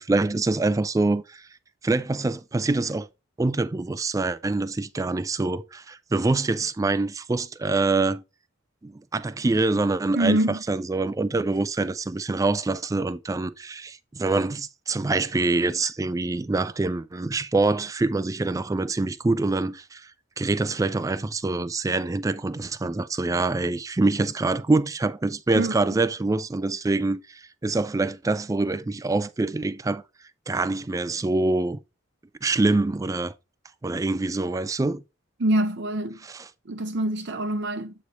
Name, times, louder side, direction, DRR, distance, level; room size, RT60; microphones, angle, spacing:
voice 1, 0.0-1.5 1.8-3.1 3.4-8.2 8.8-20.1 20.4-30.0 30.5-31.8 32.4-33.3 33.8-35.0 36.3-36.4, right 3 dB, 15° right, 0.3 m, -25 dB
voice 2, 10.1-10.6 25.5-25.9 35.4-36.2 36.7-37.9, right 1 dB, 60° right, 0.6 m, -25 dB
8.2 x 3.2 x 4.0 m
head